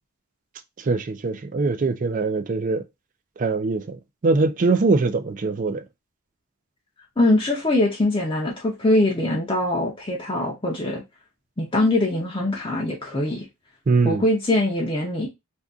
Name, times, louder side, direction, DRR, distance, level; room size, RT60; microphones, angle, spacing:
voice 1, 0.8-2.8 3.4-5.8 13.9-14.2, right 3 dB, 35° right, 0.4 m, -22 dB
voice 2, 7.2-11.0 11.6-13.5 14.0-15.3, left 1 dB, 25° left, 0.6 m, -22 dB
2.6 x 2.5 x 3.5 m
head